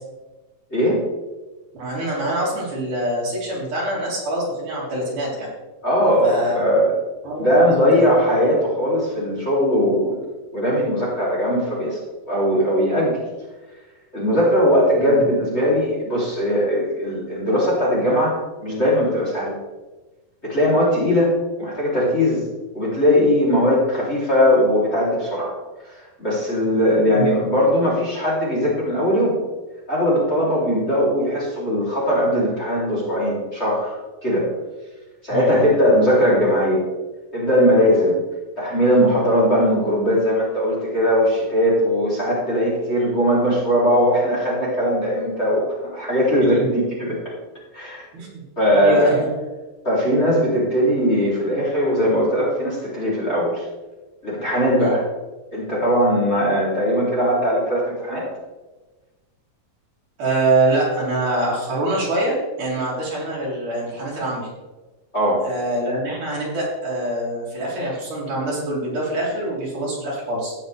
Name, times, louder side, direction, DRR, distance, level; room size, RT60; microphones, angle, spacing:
voice 1, 0.7-1.0 5.8-6.9 7.4-10.2 10.5-13.2 14.1-19.5 20.4-21.3 21.6-22.4 22.7-25.5 26.2-29.4 29.9-33.9 34.2-34.5 35.2-36.8 37.3-38.1 38.6-47.2 47.7-48.0 48.6-49.2 49.8-53.6 54.2-55.0 55.5-58.3 65.1-65.5, equal, 20° left, -7 dB, 3.3 m, -19 dB
voice 2, 1.8-5.5 6.2-6.6 7.2-8.0 15.0-15.2 27.1-27.3 35.3-35.7 46.4-46.6 48.1-48.4 48.7-49.3 54.8-54.9 60.2-64.5 65.4-70.5, right 1 dB, 65° right, -6 dB, 5.2 m, -24 dB
13.0 x 9.7 x 3.4 m, 1.2 s
omnidirectional pair, 3.9 m